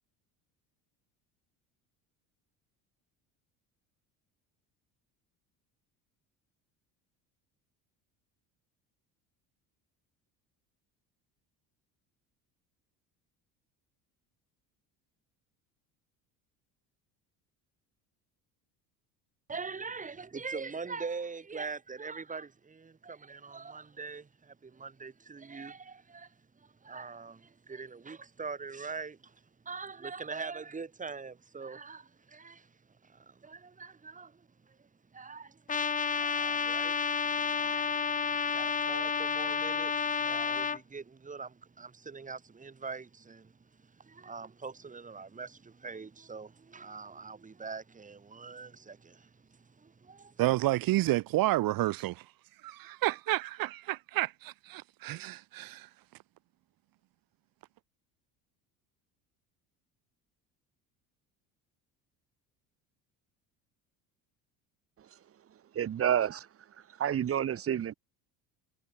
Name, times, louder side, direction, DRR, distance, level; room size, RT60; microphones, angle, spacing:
voice 1, 19.5-32.7 33.0-50.4, right 4 dB, 20° right, 2.5 m, -43 dB
Trumpet, 35.7-40.8, left 6 dB, 20° left, 0.9 m, -30 dB
voice 2, 50.4-52.3 52.6-55.9, right 17 dB, 65° right, 1.8 m, -30 dB
voice 3, 65.7-66.5 66.9-67.9, right 9 dB, 35° right, 1.2 m, -29 dB
supercardioid pair, 100°, 37 cm